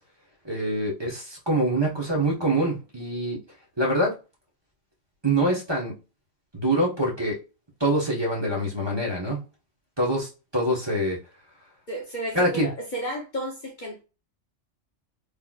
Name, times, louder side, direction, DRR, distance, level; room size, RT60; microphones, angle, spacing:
voice 1, 0.4-3.4 3.8-4.1 5.2-5.9 6.5-7.3 7.8-9.4 10.0-11.2 12.3-12.7, right 1 dB, 25° right, 1.1 m, -25 dB
voice 2, 11.9-14.0, right 1 dB, 45° left, 0.9 m, -32 dB
3.9 x 3.3 x 2.3 m
omnidirectional pair, 1.2 m